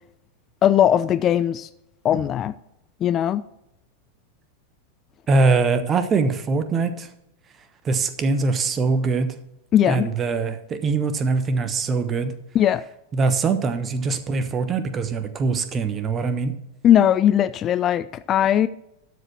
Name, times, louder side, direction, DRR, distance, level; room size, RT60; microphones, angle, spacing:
voice 1, 0.6-1.7 2.0-2.5 3.0-3.4 9.7-10.1 12.5-12.8 16.8-18.7, left 10 dB, 30° left, 0.4 m, -19 dB
voice 2, 5.3-7.1 7.8-9.3 9.9-12.3 13.1-16.5, right 4 dB, 25° right, 1.1 m, -22 dB
12.5 x 5.0 x 6.1 m
figure-of-eight pair, 90°, 0 cm